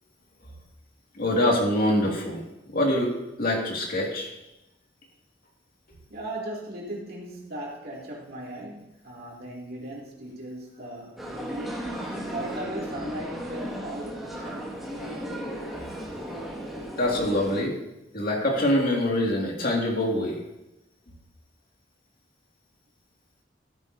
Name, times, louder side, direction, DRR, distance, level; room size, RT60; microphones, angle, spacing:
voice 1, 1.2-2.4 2.7-4.3 17.0-17.8 18.1-20.4, left 1 dB, 50° left, -1 dB, 2.1 m, -24 dB
voice 2, 6.1-11.9 12.3-14.7, right 1 dB, 55° right, -3 dB, 2.4 m, -37 dB
sound 1, 11.2-17.6, equal, ahead, 1.7 m, -35 dB
13.5 x 8.9 x 2.7 m, 0.94 s
head